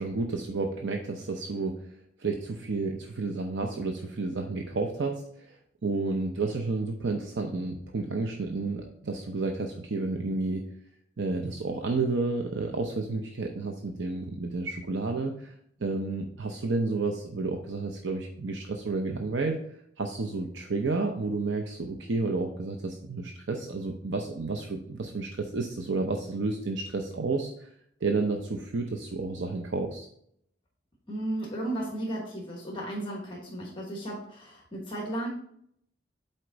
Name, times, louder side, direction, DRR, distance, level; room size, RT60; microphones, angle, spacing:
voice 1, 0.0-1.8 2.2-5.6 5.8-10.6 11.2-15.5 15.8-19.6 20.0-27.7 28.0-30.1, right 3 dB, 75° right, 3 dB, 0.7 m, -31 dB
voice 2, 31.1-35.3, right 1 dB, 25° left, -2 dB, 1.3 m, -34 dB
7.9 x 4.4 x 3.9 m, 0.69 s
head